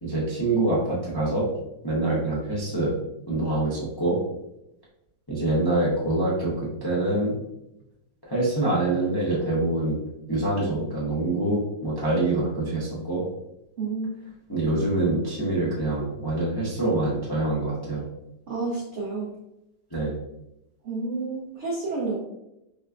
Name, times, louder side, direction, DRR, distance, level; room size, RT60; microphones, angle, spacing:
voice 1, 0.0-1.5 1.8-2.9 3.3-4.2 5.3-7.4 8.3-10.0 10.3-13.2 14.5-18.0 19.9-20.1, right 2 dB, 25° left, -7 dB, 0.5 m, -25 dB
voice 2, 13.8-14.1 18.5-19.3 20.8-22.2, right 3 dB, 70° right, -5 dB, 0.6 m, -30 dB
4.2 x 3.3 x 2.5 m, 0.87 s
omnidirectional pair, 2.3 m